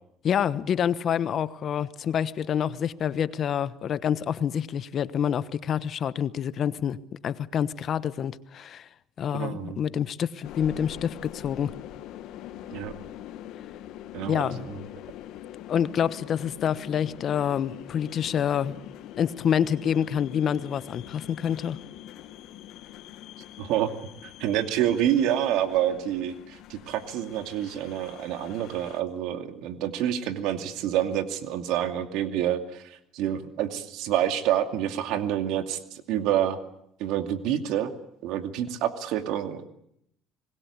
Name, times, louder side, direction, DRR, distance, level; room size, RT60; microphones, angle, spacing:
voice 1, 0.2-7.0 7.2-8.9 9.2-11.7 14.3-14.7 15.7-18.8 19.2-21.8, left 8 dB, 45° left, 1.1 m, -27 dB
voice 2, 9.3-9.8 12.7-12.9 14.1-14.8 23.6-23.9 24.2-36.6 37.0-37.9 38.2-39.6, right 11 dB, 75° right, 2.5 m, -28 dB
sound 1, 10.4-29.0, left 12 dB, 70° left, 1.7 m, -44 dB
26.0 x 20.5 x 8.6 m
cardioid pair, 115°, 0 cm